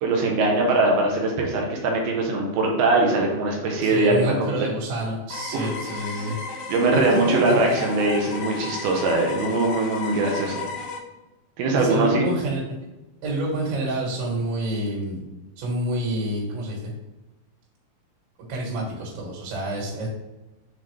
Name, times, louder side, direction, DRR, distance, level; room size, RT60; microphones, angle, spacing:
voice 1, 0.0-4.6 5.5-5.7 6.7-10.6 11.6-12.2, right 2 dB, 75° right, 0 dB, 2.6 m, -22 dB
voice 2, 3.8-6.4 6.9-7.2 7.5-7.8 11.7-12.6 13.2-15.2 15.6-16.8 18.5-20.1, right 1 dB, 90° right, -3 dB, 4.1 m, -28 dB
sound 1, 5.3-11.0, left 4 dB, 75° left, 2.2 m, -34 dB
7.5 x 3.8 x 3.2 m, 1.1 s
omnidirectional pair, 5.1 m